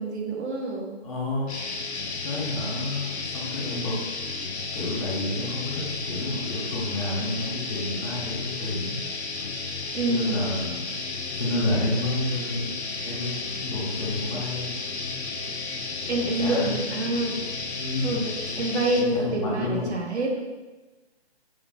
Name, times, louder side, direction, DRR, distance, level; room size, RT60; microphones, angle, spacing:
voice 1, 0.0-0.9 9.9-10.4 16.1-17.4 18.0-20.4, right 2 dB, 80° right, 0 dB, 1.1 m, -27 dB
voice 2, 1.0-1.5 2.2-4.0 4.7-9.0 10.1-10.7 11.3-12.7 13.0-13.3 13.6-14.7 16.2-16.8 17.8-18.2 19.0-20.0, left 2 dB, 35° left, -6 dB, 1.2 m, -30 dB
sound 1, 1.5-19.0, left 3 dB, 80° left, 0.8 m, -33 dB
5.4 x 2.4 x 3.8 m, 1.2 s
hypercardioid pair, 175°, 32 cm